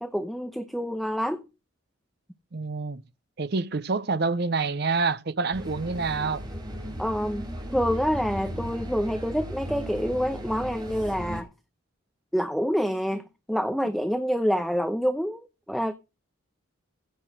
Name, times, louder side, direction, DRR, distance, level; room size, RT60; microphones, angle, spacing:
voice 1, 0.0-1.4 7.0-11.5 12.3-15.9, equal, ahead, 0.8 m, -27 dB
voice 2, 2.5-3.0 3.4-6.4, right 4 dB, 50° right, 0.6 m, -27 dB
sound 1, 5.5-11.4, equal, 20° right, 4.3 m, -36 dB
16.0 x 6.3 x 6.3 m
head